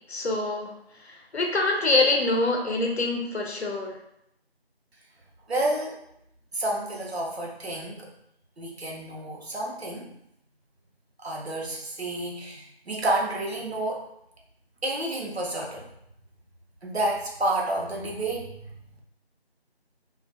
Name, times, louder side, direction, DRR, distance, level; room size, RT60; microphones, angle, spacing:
voice 1, 0.1-0.7 1.1-3.9, left 2 dB, 80° left, 2 dB, 0.6 m, -25 dB
voice 2, 5.5-6.0 6.5-8.1 8.6-10.1 11.2-14.0 14.8-15.9 16.8-18.6, right 1 dB, 75° right, -1 dB, 0.7 m, -30 dB
2.3 x 2.1 x 2.5 m, 0.77 s
figure-of-eight pair, 180°, 32 cm